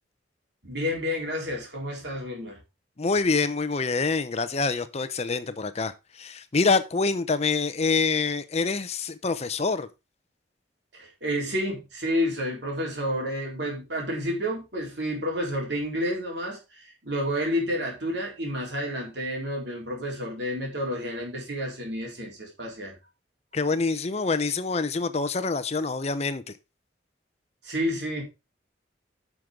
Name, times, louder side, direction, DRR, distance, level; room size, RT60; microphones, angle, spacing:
voice 1, 0.6-2.6 10.9-22.9 27.6-28.2, equal, 70° right, 3.8 m, -30 dB
voice 2, 3.0-9.9 23.5-26.4, left 4 dB, 35° left, 0.7 m, -26 dB
10.0 x 6.1 x 3.7 m
head